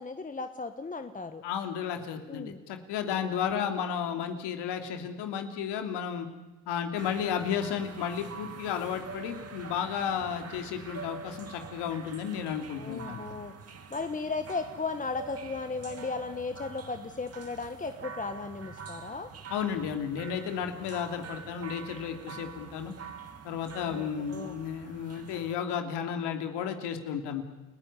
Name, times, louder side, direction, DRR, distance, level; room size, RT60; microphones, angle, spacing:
voice 1, 0.0-1.4 2.3-2.6 3.1-3.7 12.7-13.5 13.9-19.3 23.9-24.6, left 4 dB, 20° left, 9 dB, 1.3 m, -36 dB
voice 2, 1.4-6.3 6.7-13.3 19.5-22.9 23.4-27.4, left 8 dB, 65° left, 6 dB, 2.9 m, -33 dB
sound 1, 7.0-25.6, right 5 dB, 35° right, 2.6 m, -45 dB
29.5 x 15.0 x 9.9 m, 1.1 s
supercardioid pair, 80°, 44 cm